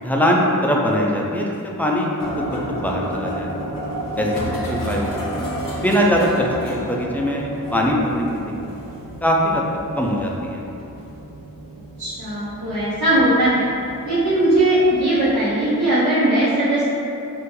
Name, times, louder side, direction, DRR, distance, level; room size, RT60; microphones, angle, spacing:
voice 1, 0.0-2.1 2.4-3.5 4.2-4.3 4.7-5.3 5.8-8.4 9.2-9.6 9.9-10.6, equal, 5° left, -2 dB, 0.3 m, -21 dB
sound 1, 2.2-15.5, equal, 85° left, 0.6 m, -32 dB
voice 2, 12.0-13.6 14.0-16.9, right 1 dB, 75° right, -12 dB, 0.9 m, -19 dB
2.7 x 2.5 x 3.7 m, 2.7 s
wide cardioid pair, 90°, 33 cm